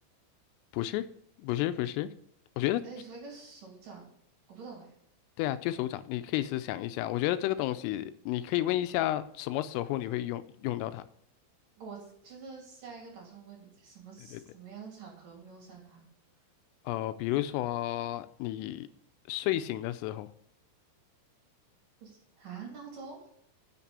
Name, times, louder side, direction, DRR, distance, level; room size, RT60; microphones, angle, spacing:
voice 1, 0.7-1.1 1.4-2.1 2.6-2.8 5.4-11.0 14.3-14.4 16.9-18.9 19.3-20.3, left 14 dB, 85° left, 12 dB, 3.2 m, -31 dB
voice 2, 2.8-4.0 4.5-4.9 11.8-16.1 22.0-23.2, right 5 dB, 45° right, -2 dB, 4.2 m, -46 dB
8.5 x 6.7 x 6.8 m, 0.71 s
omnidirectional pair, 5.8 m